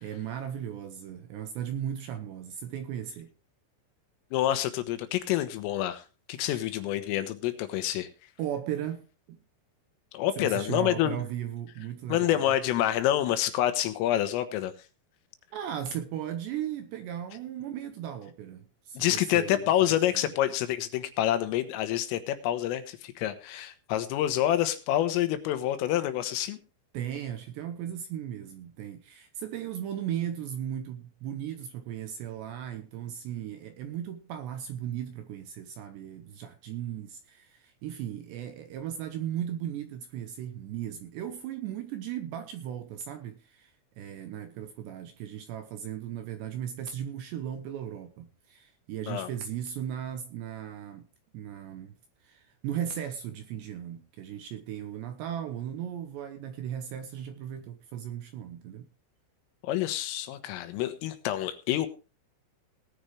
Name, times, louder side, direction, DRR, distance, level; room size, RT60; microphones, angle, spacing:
voice 1, 0.0-3.3 6.5-6.7 8.4-9.4 10.4-12.5 15.5-20.3 26.9-51.1 51.3-52.0 52.2-58.9, right 10 dB, 80° right, 2.7 m, -37 dB
voice 2, 4.3-6.0 6.3-8.1 10.1-11.2 12.1-14.7 19.0-26.6 49.1-49.3 59.6-61.9, left 12 dB, 80° left, 3.8 m, -27 dB
19.0 x 9.7 x 3.3 m
omnidirectional pair, 6.0 m